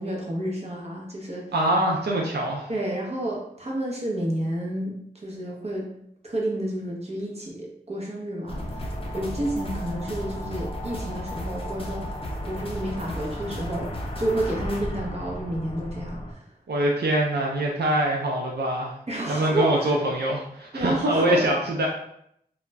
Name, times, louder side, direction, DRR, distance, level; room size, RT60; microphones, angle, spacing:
voice 1, 0.0-1.4 2.7-5.9 6.2-12.1 12.5-13.9 14.2-16.5 19.1-19.9 20.7-21.4, right 1 dB, 40° right, -2 dB, 0.8 m, -30 dB
voice 2, 1.5-2.7 16.7-18.9 19.3-21.9, right 1 dB, 75° right, -2 dB, 0.5 m, -24 dB
Action music loop with dark ambient drones, 8.5-16.3, equal, 35° left, 0.5 m, -33 dB
2.3 x 2.1 x 3.3 m, 0.71 s
wide cardioid pair, 55°, 17 cm